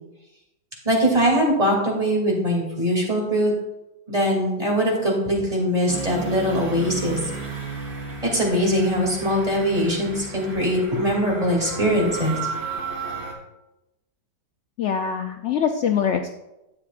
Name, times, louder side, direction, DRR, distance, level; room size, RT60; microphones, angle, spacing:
voice 1, 0.8-3.5 4.1-7.2 8.2-12.4, equal, 20° right, -3 dB, 2.8 m, -22 dB
sound 1, 5.9-13.3, right 4 dB, 55° right, 2.7 m, -33 dB
voice 2, 14.8-16.3, left 7 dB, 80° left, 5 dB, 0.6 m, -23 dB
12.5 x 8.5 x 2.5 m, 0.94 s
omnidirectional pair, 1.8 m